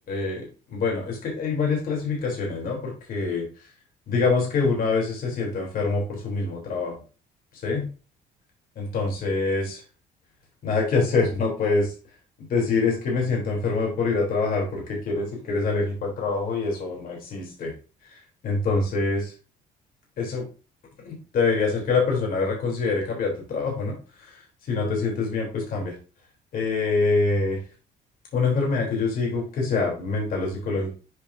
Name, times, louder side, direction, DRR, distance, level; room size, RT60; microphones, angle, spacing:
voice 1, 0.1-3.7 4.1-7.0 7.5-7.9 8.8-9.8 10.6-11.9 12.5-17.7 18.0-19.3 20.2-20.4 21.0-25.9 26.5-27.6 28.3-30.9, left 4 dB, 55° left, -1 dB, 3.5 m, -25 dB
8.0 x 5.2 x 2.7 m, 0.34 s
cardioid pair, 110°, 17 cm